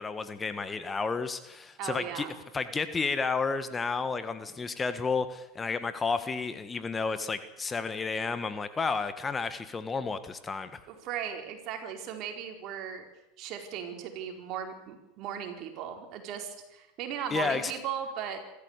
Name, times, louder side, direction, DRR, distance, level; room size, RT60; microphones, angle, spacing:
voice 1, 0.0-2.3 2.5-10.8 17.3-17.7, left 4 dB, 20° left, 11 dB, 1.6 m, -31 dB
voice 2, 1.8-2.4 10.9-13.1 13.4-18.5, right 8 dB, 55° right, 4 dB, 4.5 m, -37 dB
26.5 x 14.0 x 8.3 m, 0.94 s
hypercardioid pair, 100°, 0 cm